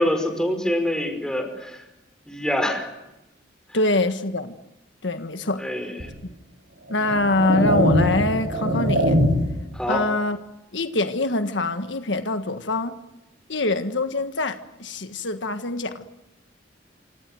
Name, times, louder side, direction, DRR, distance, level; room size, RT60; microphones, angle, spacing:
voice 1, 0.0-1.8 2.3-2.9 5.6-5.9 9.7-10.0, left 1 dB, 5° left, 5 dB, 5.5 m, -25 dB
voice 2, 3.7-4.6 5.0-5.6 6.9-9.2 9.9-10.4 10.7-13.0 13.5-16.0, left 2 dB, 75° left, 8 dB, 1.6 m, -24 dB
sound 1, 6.0-6.1 6.9-9.7, equal, 65° right, 5.7 m, -22 dB
28.0 x 26.5 x 7.8 m, 0.94 s
head